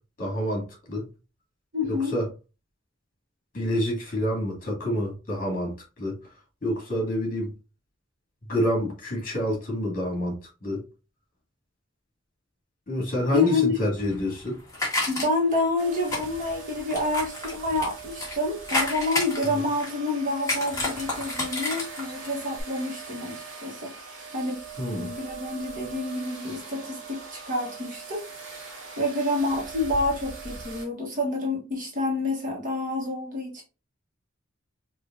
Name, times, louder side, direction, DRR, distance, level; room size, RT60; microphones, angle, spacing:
voice 1, 0.2-1.0 1.9-2.3 3.5-6.2 6.6-7.5 8.5-10.8 12.9-14.6 19.5-19.6 24.8-25.1, equal, 45° left, 2.1 m, -27 dB
voice 2, 1.7-2.1 13.3-13.8 15.1-23.9 24.3-24.6 24.9-28.2 29.0-33.6, left 2 dB, 40° right, 1.3 m, -28 dB
sound 1, 14.0-15.6 16.0-18.3 18.6-20.1 20.4-22.3 22.5-22.6, left 2 dB, 15° left, 1.5 m, -30 dB
sound 2, 15.8-30.9, right 5 dB, 85° right, 1.5 m, -41 dB
4.9 x 2.6 x 2.6 m
head